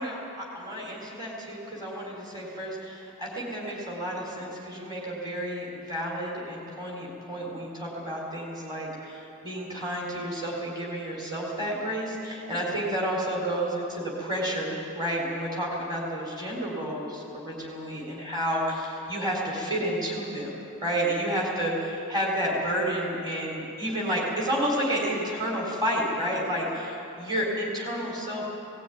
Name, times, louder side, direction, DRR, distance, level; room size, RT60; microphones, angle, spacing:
voice 1, 0.0-20.5 20.8-28.5, equal, 20° right, -3 dB, 3.9 m, -30 dB
18.5 x 17.5 x 9.3 m, 3.0 s
head